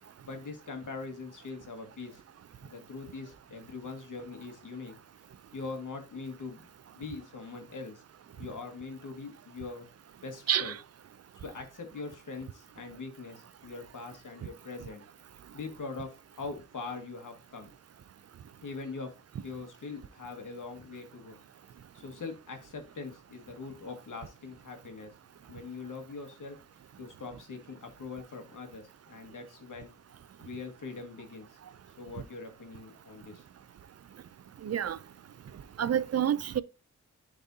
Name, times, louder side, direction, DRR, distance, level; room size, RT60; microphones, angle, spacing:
voice 1, 0.3-2.2 2.6-4.9 5.5-6.7 6.9-8.0 8.3-9.9 10.2-10.7 11.3-15.0 15.5-17.7 18.6-19.1 19.4-21.4 21.9-25.1 25.5-26.6 27.0-29.9 30.4-31.6 32.0-33.4 34.7-34.8, left 4 dB, 90° left, 1.7 m, -42 dB
voice 2, 34.6-35.0 35.8-36.6, right 9 dB, 55° right, 0.4 m, -28 dB
10.5 x 4.0 x 2.7 m
wide cardioid pair, 120°, 30 cm